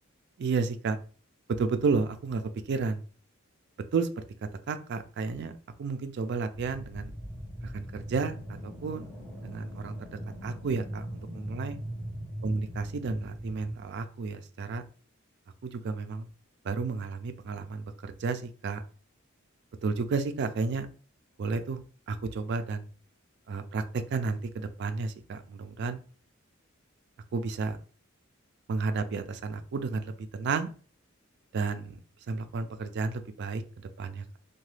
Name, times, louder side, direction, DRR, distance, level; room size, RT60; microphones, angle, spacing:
voice 1, 0.4-1.0 1.6-2.4 2.7-3.0 3.9-4.1 4.7-5.5 5.8-7.1 7.6-8.4 8.6-9.1 9.4-9.9 10.4-11.8 12.4-14.8 15.6-16.3 16.6-18.8 19.8-20.9 21.4-21.8 22.1-22.9 23.5-26.0 27.3-27.8 28.7-30.7 31.5-32.0 32.3-34.4, right 4 dB, 55° right, 9 dB, 0.3 m, -32 dB
sound 1, 6.5-13.8, equal, 10° left, 0.9 m, -40 dB
2.8 x 2.2 x 3.2 m, 0.40 s
head